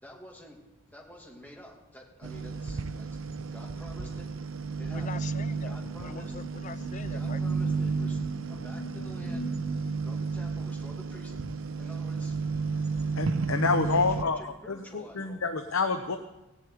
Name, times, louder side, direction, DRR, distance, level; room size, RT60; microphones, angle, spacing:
voice 1, 0.0-0.6 0.9-3.2 3.5-4.3 4.8-5.2 5.6-6.3 7.1-9.5 10.0-11.5 11.8-12.4 13.9-15.6, equal, 10° left, -1 dB, 2.5 m, -49 dB
sound 1, 2.2-14.2, right 4 dB, 75° right, 0.8 m, -32 dB
voice 2, 4.9-5.8 6.0-7.4, left 5 dB, 35° left, 14 dB, 0.4 m, -42 dB
sound 2, 5.3-9.8, right 2 dB, 60° left, 2.3 m, -41 dB
voice 3, 13.1-16.2, left 4 dB, 80° left, 7 dB, 0.8 m, -28 dB
17.0 x 7.2 x 9.2 m, 1.0 s
head